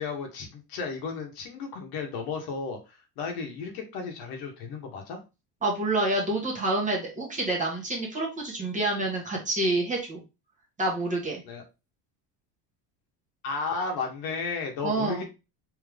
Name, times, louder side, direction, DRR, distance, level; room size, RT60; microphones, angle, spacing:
voice 1, 0.0-5.2 11.4-11.6 13.4-15.2, left 4 dB, 65° left, 2 dB, 1.3 m, -34 dB
voice 2, 5.6-10.2 10.8-11.4 14.8-15.2, right 2 dB, 20° right, -2 dB, 1.3 m, -28 dB
3.6 x 3.1 x 3.4 m, 0.28 s
cardioid pair, 150°, 40 cm